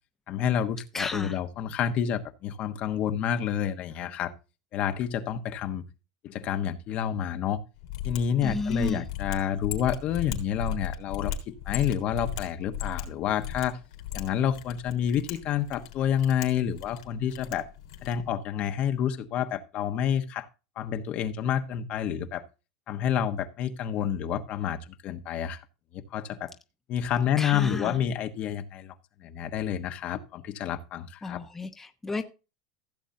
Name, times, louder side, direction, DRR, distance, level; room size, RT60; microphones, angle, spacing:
voice 1, 0.3-4.3 4.7-5.8 6.2-7.6 8.0-13.8 14.1-17.7 18.0-20.5 20.8-22.4 22.9-25.6 25.9-26.5 26.9-28.9 29.2-31.4, left 9 dB, 45° left, 1.2 m, -29 dB
voice 2, 0.9-1.4 8.4-9.1 27.4-28.0 31.2-32.2, left 3 dB, 10° left, 1.0 m, -32 dB
Mechanisms, 7.8-18.3, left 9 dB, 80° left, 3.3 m, -37 dB
15.5 x 7.3 x 2.7 m
supercardioid pair, 135°, 3 cm